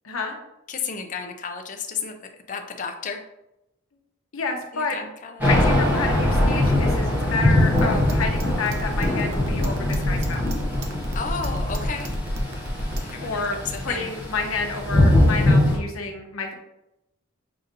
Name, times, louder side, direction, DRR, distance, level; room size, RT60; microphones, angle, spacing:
voice 1, 0.0-0.4 4.3-5.0 5.5-10.4 13.2-13.6 13.8-16.5, left 3 dB, 90° left, 2 dB, 0.8 m, -29 dB
voice 2, 0.7-3.2 4.7-5.5 11.1-12.1 13.0-14.1, left 5 dB, 40° left, 5 dB, 0.5 m, -33 dB
Thunder / Rain, 5.4-15.8, left 1 dB, 10° right, 1.2 m, -22 dB
sound 1, 7.8-13.1, equal, 65° right, 0.7 m, -30 dB
6.6 x 2.6 x 2.6 m, 0.89 s
head